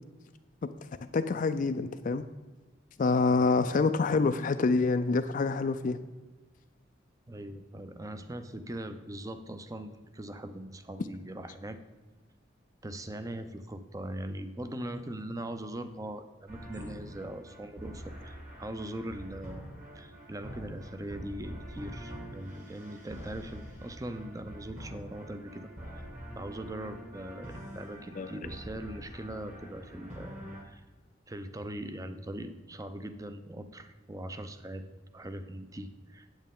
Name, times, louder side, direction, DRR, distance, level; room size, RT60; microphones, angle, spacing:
voice 1, 1.1-2.3 3.0-6.0 28.2-28.3, left 3 dB, 45° left, 9 dB, 0.3 m, -26 dB
voice 2, 7.3-11.8 12.8-19.6 20.0-25.7 25.9-26.1 26.4-30.4 30.7-30.8 31.3-34.8 35.1-36.3, right 1 dB, 15° right, 9 dB, 0.5 m, -41 dB
sound 1, 16.5-30.6, equal, 40° right, 1.8 m, -45 dB
9.0 x 8.3 x 3.7 m, 1.2 s
head